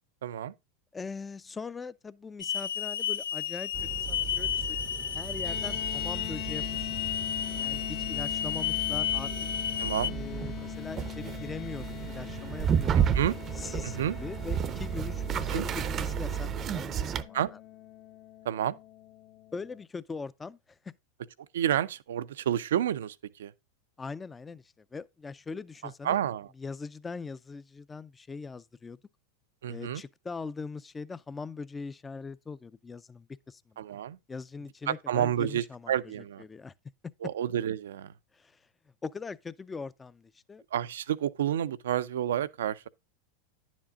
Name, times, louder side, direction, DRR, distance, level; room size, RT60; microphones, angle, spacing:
voice 1, 0.2-0.5 9.8-10.1 13.0-13.3 13.8-14.2 15.5-15.7 17.3-17.5 18.4-18.8 21.5-23.5 26.0-26.5 29.6-30.0 33.8-34.2 34.9-36.4 37.2-38.1 40.7-42.9, right 10 dB, 80° right, 0.5 m, -30 dB
voice 2, 0.9-6.9 7.6-9.3 10.1-16.5 16.7-17.6 19.5-20.9 24.0-26.2 26.6-29.0 29.7-33.8 34.3-35.9 36.4-36.7 38.3-38.7 39.0-40.6, left 4 dB, 15° left, 0.4 m, -41 dB
Hiss / Alarm, 2.4-10.1, left 10 dB, 80° left, 0.4 m, -32 dB
sound 1, 3.7-17.2, right 8 dB, 35° right, 0.6 m, -33 dB
sound 2, 5.4-19.8, left 17 dB, 50° left, 0.7 m, -43 dB
10.5 x 7.3 x 2.4 m
hypercardioid pair, 100°, 0 cm